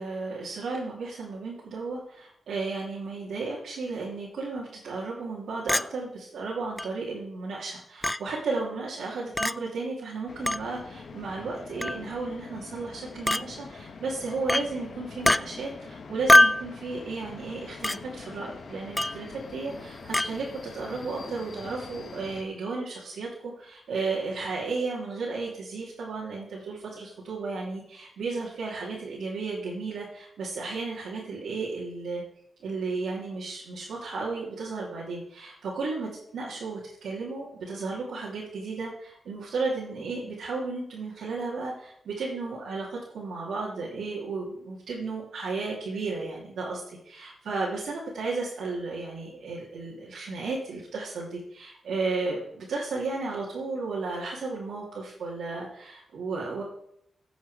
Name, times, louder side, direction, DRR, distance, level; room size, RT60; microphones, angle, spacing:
voice 1, 0.0-23.3 23.6-32.2 32.6-56.6, right 3 dB, 85° right, -6 dB, 3.0 m, -34 dB
Chink clink, 5.7-5.9 6.8-6.9 8.0-8.2 9.4-9.5 10.5-10.6 11.8-12.0 13.3-13.4 14.5-14.7 15.2-15.4 16.3-16.6 17.8-18.0 19.0-19.2 20.1-20.3, left 1 dB, 15° left, 0.4 m, -21 dB
sound 1, 10.3-22.4, left 4 dB, 65° left, 1.4 m, -44 dB
15.5 x 7.2 x 5.0 m, 0.73 s
cardioid pair, 65°, 0 cm